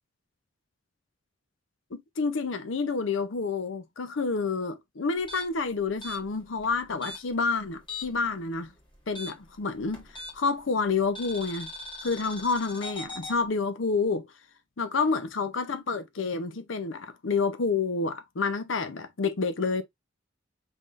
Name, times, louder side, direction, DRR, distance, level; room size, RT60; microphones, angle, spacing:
voice 1, 1.9-8.7 9.1-10.0 10.3-11.7 12.0-14.3 14.8-19.8, left 4 dB, 75° left, 0.7 m, -29 dB
sound 1, 5.2-8.3 8.6-10.6 11.2-13.4, left 2 dB, 25° left, 1.8 m, -40 dB
5.5 x 3.6 x 2.5 m
head